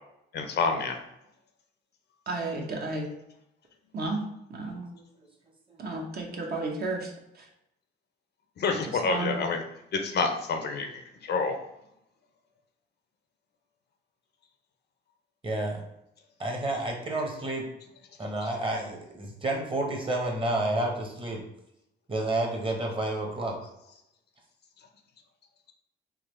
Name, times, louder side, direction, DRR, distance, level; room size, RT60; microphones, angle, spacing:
voice 1, 0.3-1.0 8.6-9.6 9.9-11.6, left 4 dB, 55° left, 5 dB, 0.6 m, -28 dB
voice 2, 2.3-3.1 3.9-4.2 4.5-4.9 5.8-7.5 9.1-9.5, right 2 dB, 50° right, 0 dB, 0.9 m, -32 dB
voice 3, 4.7-5.3 5.7-5.8 15.4-15.8 16.4-17.7 18.2-21.4 22.1-23.6, right 2 dB, 25° right, 1 dB, 1.0 m, -30 dB
3.7 x 2.9 x 3.1 m, 0.82 s
cardioid pair, 90°, 20 cm